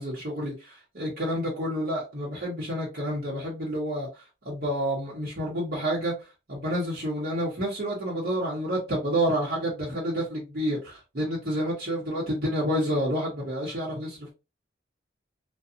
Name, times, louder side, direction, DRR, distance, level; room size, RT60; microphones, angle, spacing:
voice 1, 0.0-4.1 4.4-6.1 6.5-14.3, equal, 50° right, 0.9 m, -29 dB
2.5 x 2.3 x 2.7 m
head